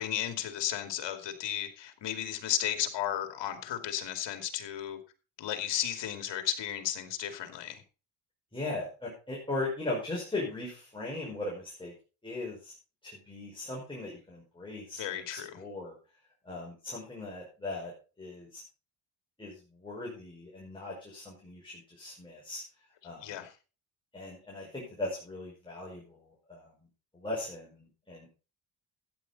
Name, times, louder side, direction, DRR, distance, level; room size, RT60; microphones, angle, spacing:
voice 1, 0.0-5.0 5.4-7.8 14.9-15.6 23.2-23.5, left 11 dB, 65° left, 7 dB, 2.6 m, -34 dB
voice 2, 8.5-11.9 12.2-12.7 13.0-15.0 15.3-15.9 16.5-17.9 18.2-18.6 19.4-19.5 19.8-22.6 23.0-23.3 24.1-26.0 26.5-26.7 27.2-28.3, left 2 dB, 10° left, -4 dB, 5.3 m, -38 dB
13.5 x 9.5 x 4.1 m, 0.34 s
cardioid pair, 115°, 46 cm